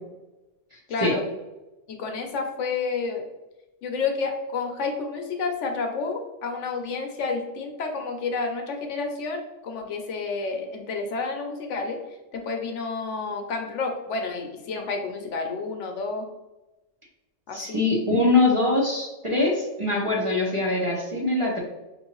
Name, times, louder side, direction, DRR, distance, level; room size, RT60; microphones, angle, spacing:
voice 1, 0.9-1.3 1.9-3.3 3.8-12.0 12.3-16.2 17.5-17.8, left 4 dB, 70° left, 4 dB, 1.0 m, -30 dB
voice 2, 17.5-21.6, left 2 dB, 30° right, -3 dB, 0.8 m, -23 dB
5.5 x 2.7 x 3.0 m, 1.0 s
omnidirectional pair, 1.3 m